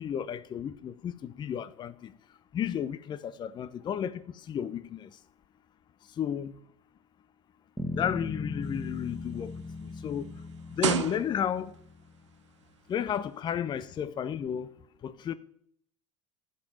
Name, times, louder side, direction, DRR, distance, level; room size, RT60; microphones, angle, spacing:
voice 1, 0.0-2.1 2.5-4.2 4.5-5.1 6.2-6.5 8.0-9.5 9.8-10.3 10.8-11.7 12.9-14.7 15.0-15.3, left 8 dB, 30° left, 0.6 m, -32 dB
Bass guitar, 7.8-12.1, left 3 dB, ahead, 1.7 m, -38 dB
sound 1, 8.6-11.8 12.6-12.8, right 11 dB, 70° right, 0.5 m, -34 dB
13.0 x 5.2 x 9.2 m
figure-of-eight pair, 70°, 16 cm